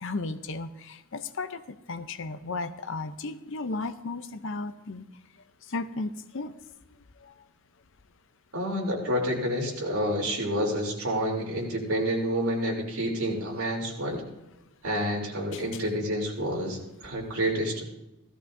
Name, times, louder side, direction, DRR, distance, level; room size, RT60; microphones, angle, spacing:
voice 1, 0.0-5.0 5.7-6.5 7.2-7.3 15.5-15.6, left 3 dB, 60° left, 11 dB, 0.6 m, -34 dB
voice 2, 8.5-14.2 14.8-17.8, equal, 75° right, -1 dB, 3.2 m, -29 dB
16.5 x 14.0 x 2.6 m, 0.94 s
head